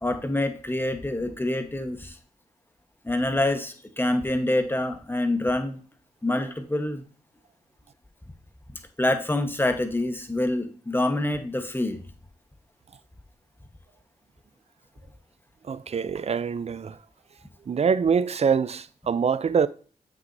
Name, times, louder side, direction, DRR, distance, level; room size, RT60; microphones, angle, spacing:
voice 1, 0.0-2.2 3.0-5.8 6.2-7.0 9.0-12.0, left 1 dB, 15° left, 1.2 m, -26 dB
voice 2, 15.7-17.0 17.7-19.7, right 6 dB, 45° right, 0.5 m, -24 dB
7.4 x 6.2 x 2.7 m
cardioid pair, 60°, 15 cm